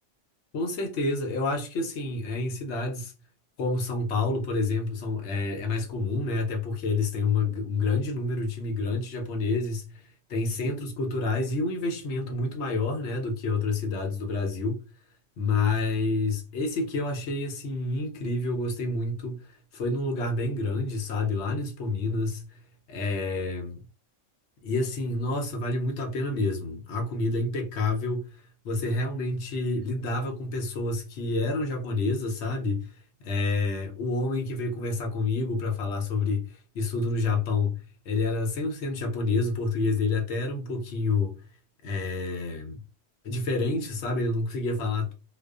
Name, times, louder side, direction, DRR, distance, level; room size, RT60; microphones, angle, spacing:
voice 1, 0.5-3.1 3.6-10.0 10.3-14.8 15.4-22.6 22.9-23.8 24.6-28.4 28.6-32.9 33.2-37.8 38.1-41.4 41.8-42.8 43.2-45.1, left 3 dB, 70° left, 0.9 m, -28 dB
2.5 x 2.3 x 2.3 m
omnidirectional pair, 1.2 m